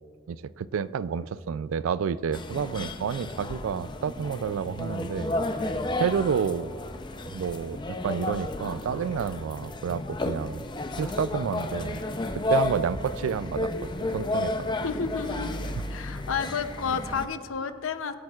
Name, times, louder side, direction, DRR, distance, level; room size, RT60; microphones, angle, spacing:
voice 1, 0.3-5.4 6.0-6.7 7.3-10.6 11.0-12.0 12.3-14.5, right 7 dB, 85° right, 17 dB, 0.3 m, -30 dB
sound 1, 2.3-17.3, left 2 dB, 25° left, 0.5 m, -32 dB
voice 2, 14.8-15.6 15.9-18.2, left 6 dB, 85° left, 10 dB, 0.6 m, -31 dB
23.0 x 8.8 x 2.4 m, 2.1 s
head